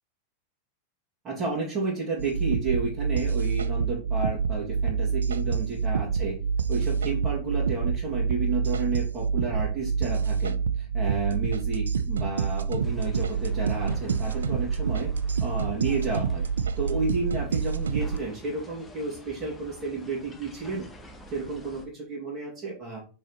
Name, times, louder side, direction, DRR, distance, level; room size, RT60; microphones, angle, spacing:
voice 1, 1.2-6.4 6.7-15.1 15.4-16.4 16.8-20.9 21.3-23.0, right 3 dB, 30° right, -6 dB, 2.4 m, -31 dB
sound 1, 2.2-18.2, right 6 dB, 70° right, 0.4 m, -27 dB
sound 2, 12.8-21.9, equal, 10° left, 1.2 m, -49 dB
6.3 x 4.4 x 4.2 m, 0.37 s
figure-of-eight pair, 90°, 0 cm